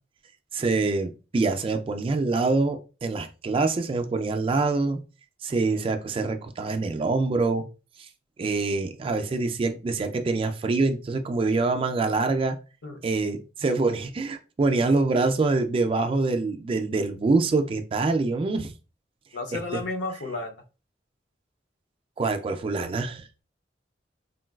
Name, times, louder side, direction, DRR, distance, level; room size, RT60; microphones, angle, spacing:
voice 1, 0.5-5.0 5.4-7.7 8.0-8.1 8.4-12.6 13.0-18.7 22.2-23.3, right 3 dB, 30° right, 0.3 m, -25 dB
voice 2, 19.3-20.6, left 2 dB, 65° left, 0.6 m, -33 dB
3.8 x 2.2 x 2.2 m
head